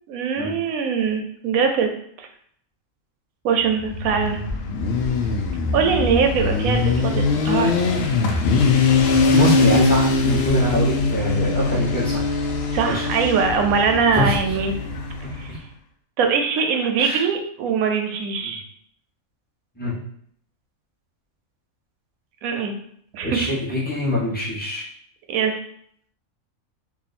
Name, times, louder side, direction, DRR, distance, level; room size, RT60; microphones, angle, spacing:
voice 1, 0.1-1.9 2.2-2.3 3.4-4.4 5.7-7.7 12.7-14.7 15.4-15.5 16.2-18.6 22.4-22.7 23.1-23.5 25.3-25.6, right 6 dB, 80° right, 4 dB, 1.0 m, -22 dB
Motorcycle, 3.8-15.5, left 4 dB, 65° left, 0.6 m, -21 dB
voice 2, 9.3-12.2 12.8-13.0 14.1-14.4 15.5-15.6 17.0-17.2 18.4-18.6 19.8-19.9 23.2-24.8, left 1 dB, 5° left, -7 dB, 1.0 m, -24 dB
2.8 x 2.6 x 4.1 m, 0.66 s
omnidirectional pair, 1.5 m